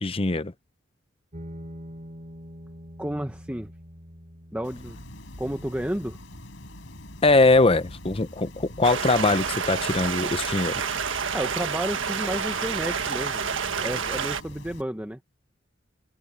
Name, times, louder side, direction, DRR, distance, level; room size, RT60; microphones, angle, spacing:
voice 1, 0.0-0.5 7.2-10.8, left 2 dB, 30° left, 0.9 m, -22 dB
sound 1, 1.3-10.3, equal, 40° right, 7.0 m, -46 dB
voice 2, 3.0-3.7 4.5-5.0 5.4-6.2 11.3-13.4 13.8-15.2, right 1 dB, 10° right, 1.0 m, -31 dB
sound 2, 4.6-14.8, left 1 dB, 75° left, 4.8 m, -43 dB
Stream, 8.8-14.4, right 6 dB, 90° right, 1.5 m, -29 dB
open air
head